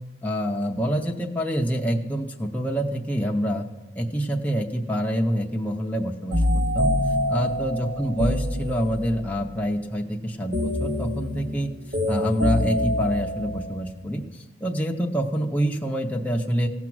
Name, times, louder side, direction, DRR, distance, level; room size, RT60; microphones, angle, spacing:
voice 1, 0.2-3.7 4.0-6.4 6.7-6.9 7.3-11.7 12.1-16.7, equal, 10° left, 0 dB, 0.6 m, -26 dB
sound 1, 6.3-9.3 10.5-13.8, left 1 dB, 50° right, 2.2 m, -26 dB
16.0 x 6.0 x 6.1 m, 1.1 s
head